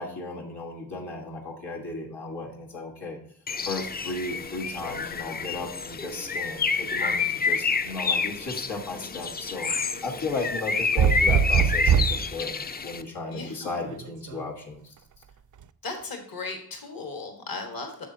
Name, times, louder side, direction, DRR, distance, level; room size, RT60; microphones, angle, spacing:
voice 1, 0.0-3.2 3.6-9.7 10.0-14.9, left 3 dB, 90° left, -1 dB, 1.5 m, -35 dB
Bird, 3.5-13.0, left 4 dB, 25° left, 0.4 m, -28 dB
voice 2, 8.8-9.1 9.9-10.0 13.3-13.7 15.8-18.1, left 3 dB, 60° left, 3 dB, 1.5 m, -37 dB
sound 1, 11.0-12.2 13.9-14.4, right 7 dB, 50° right, 0.5 m, -21 dB
8.0 x 6.3 x 2.7 m, 0.67 s
cardioid pair, 55°, 40 cm